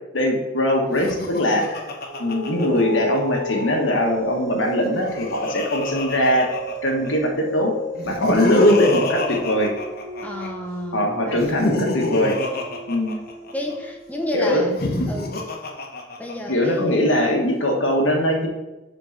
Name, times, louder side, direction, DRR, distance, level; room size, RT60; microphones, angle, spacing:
voice 1, 0.1-1.8 2.2-6.5 6.8-7.7 8.0-9.7 10.9-12.4 12.9-13.2 14.3-14.7 16.5-18.5, left 1 dB, 85° left, 1 dB, 1.3 m, -21 dB
Laughter, 0.9-3.4 4.7-7.1 8.0-10.5 11.3-13.7 14.6-16.5, left 1 dB, 50° left, 1.0 m, -25 dB
sound 1, 1.9-14.7, equal, 75° right, 1.6 m, -33 dB
voice 2, 10.2-11.7 13.5-14.7 15.1-15.4 16.2-17.1, left 1 dB, 10° left, 1 dB, 0.7 m, -31 dB
5.2 x 4.6 x 5.9 m, 1.0 s
head